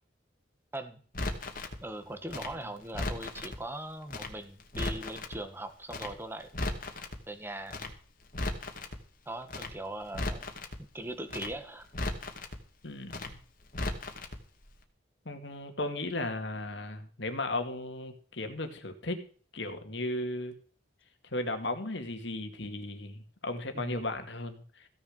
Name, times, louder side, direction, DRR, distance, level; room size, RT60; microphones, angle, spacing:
Crackle, 1.1-1.8 2.3-3.6 4.1-4.3 4.6-5.4 5.9-6.1 6.4-7.2 7.7-7.9 8.2-9.0 9.5-9.7 10.0-10.8 11.3-11.5 11.8-12.6 13.1-13.3 13.6-14.4 14.6-14.7, left 2 dB, 45° left, 2.2 m, -36 dB
voice 1, 1.8-6.5 7.3-7.8 9.2-10.5 10.9-11.9 23.7-24.1, right 1 dB, 10° right, 9 dB, 1.7 m, -40 dB
voice 2, 12.8-13.4 15.3-19.2 19.5-20.5 21.3-24.9, left 2 dB, 65° left, 6 dB, 2.3 m, -36 dB
15.5 x 7.0 x 6.6 m, 0.43 s
head